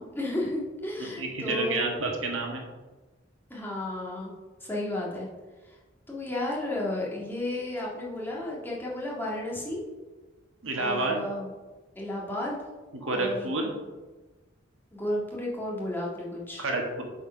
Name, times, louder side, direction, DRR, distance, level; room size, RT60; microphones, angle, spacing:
voice 1, 0.0-1.9 3.5-4.3 4.6-5.3 6.1-9.8 10.7-11.5 11.9-12.6 13.0-13.5 14.9-16.7, left 1 dB, 10° left, -4 dB, 1.8 m, -33 dB
voice 2, 1.0-2.6 10.6-11.2 12.9-13.7 16.6-17.0, right 2 dB, 80° right, 1 dB, 1.6 m, -29 dB
7.8 x 4.7 x 5.7 m, 1.2 s
head